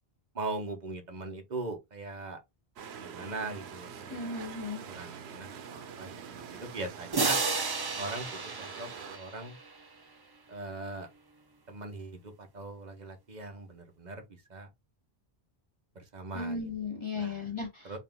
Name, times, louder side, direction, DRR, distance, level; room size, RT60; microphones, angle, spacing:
voice 1, 0.3-2.4 3.0-4.5 4.8-7.4 8.0-9.6 10.5-11.1 11.7-14.2 14.5-14.7 15.9-16.7 17.2-17.5 17.8-18.0, right 3 dB, 45° right, 1.1 m, -40 dB
sound 1, 2.8-9.2, right 7 dB, 90° right, 0.9 m, -45 dB
voice 2, 4.1-4.8 16.3-18.0, left 4 dB, 30° left, 1.2 m, -36 dB
sound 2, 7.1-9.8, right 3 dB, 30° right, 0.5 m, -32 dB
3.9 x 2.5 x 3.5 m
omnidirectional pair, 1.1 m